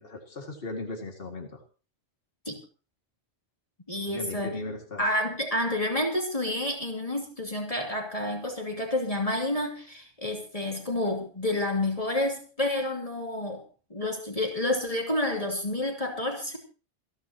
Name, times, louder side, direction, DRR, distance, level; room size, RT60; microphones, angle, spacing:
voice 1, 0.0-1.6 4.0-5.1, left 2 dB, 50° left, 2 dB, 2.5 m, -37 dB
voice 2, 3.9-4.5 5.0-13.6 13.9-16.6, left 1 dB, 30° left, 1 dB, 2.9 m, -29 dB
28.5 x 10.5 x 2.9 m, 0.36 s
omnidirectional pair, 1.3 m